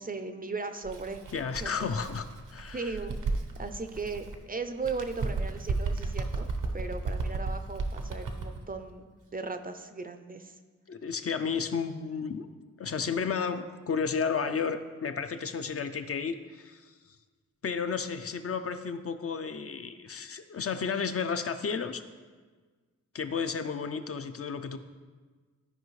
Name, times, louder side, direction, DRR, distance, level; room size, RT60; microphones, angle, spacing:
voice 1, 0.0-1.2 1.6-1.9 2.7-3.2 3.6-6.5 6.7-10.6, right 4 dB, 30° right, 8 dB, 0.4 m, -37 dB
Bird, 0.8-4.4 4.8-8.6, right 3 dB, 85° right, 0.8 m, -34 dB
voice 2, 1.3-3.0 10.9-12.5 12.8-16.9 17.6-22.0 23.1-24.8, left 6 dB, 50° left, 9 dB, 0.4 m, -32 dB
13.0 x 5.0 x 3.1 m, 1.4 s
wide cardioid pair, 135°, 30 cm